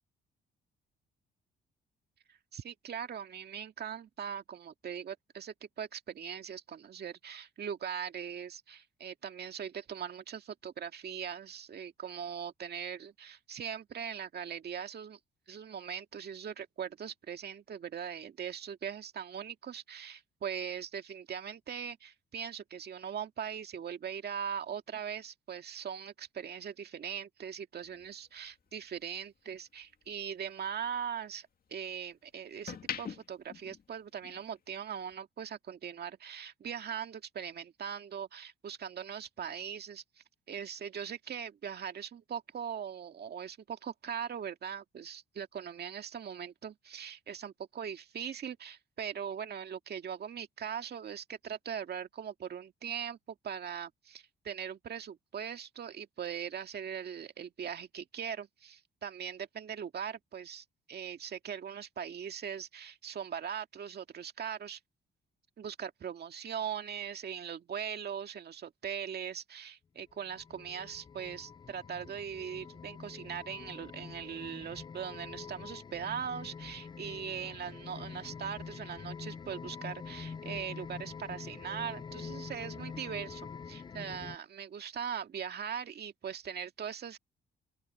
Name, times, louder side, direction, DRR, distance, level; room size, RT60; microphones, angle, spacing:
voice 1, 2.3-15.2 15.5-40.0 40.5-64.8 65.6-87.2, right 8 dB, 55° right, 2.0 m, -40 dB
sound 1, 27.8-30.2 30.6-32.0 32.4-34.6 34.9-35.1, left 7 dB, 50° left, 2.2 m, -44 dB
sound 2, 70.1-84.4, left 6 dB, 25° left, 0.3 m, -45 dB
open air
cardioid pair, 90°, 20 cm